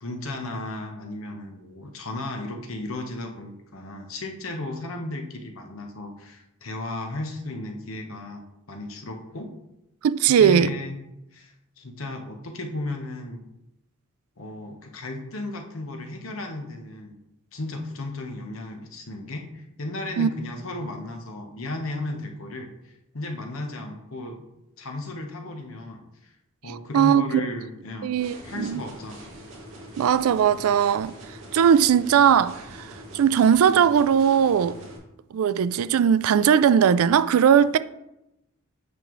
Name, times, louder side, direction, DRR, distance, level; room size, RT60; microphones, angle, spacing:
voice 1, 0.0-9.5 10.3-11.0 11.3-13.4 14.4-17.2 17.5-24.4 24.8-26.0 26.6-28.2 28.4-29.3, left 2 dB, 70° left, 1.0 m, -35 dB
voice 2, 10.0-10.7 20.2-20.3 26.7-27.5 28.0-28.8 30.0-31.1 31.5-32.9 33.1-34.8 35.3-37.8, right 8 dB, 80° right, 0.3 m, -19 dB
sound 1, 28.2-35.0, equal, 60° right, 1.8 m, -43 dB
8.1 x 5.3 x 3.1 m
head